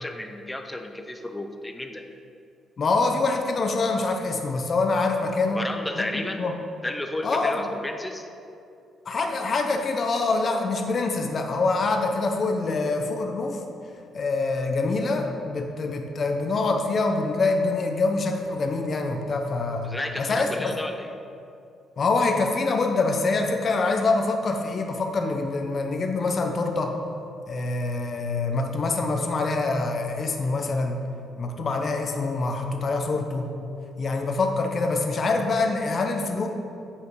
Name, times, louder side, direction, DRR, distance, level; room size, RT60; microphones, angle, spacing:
voice 1, 0.0-2.0 5.5-6.4 6.8-8.3 19.8-21.1, left 1 dB, 10° left, 5 dB, 0.7 m, -32 dB
voice 2, 2.8-5.6 5.9-6.5 7.2-7.6 9.1-13.6 14.1-20.8 22.0-26.9 27.5-31.0 31.4-33.5 34.0-36.5, left 3 dB, 45° left, 3 dB, 0.9 m, -25 dB
8.7 x 5.1 x 4.8 m, 2.6 s
cardioid pair, 90°, 0 cm